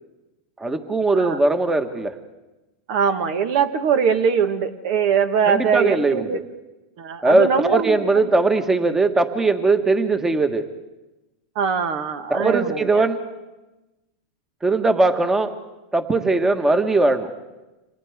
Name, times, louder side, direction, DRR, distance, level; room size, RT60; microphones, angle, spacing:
voice 1, 0.6-2.1 5.5-6.4 7.2-10.7 12.3-13.2 14.6-15.5 15.9-17.3, right 3 dB, 15° right, 7 dB, 1.5 m, -20 dB
voice 2, 2.9-6.4 7.0-8.1 11.5-13.0, right 7 dB, 60° right, 9 dB, 1.4 m, -21 dB
29.5 x 26.5 x 3.6 m, 1.1 s
hypercardioid pair, 115°, 3 cm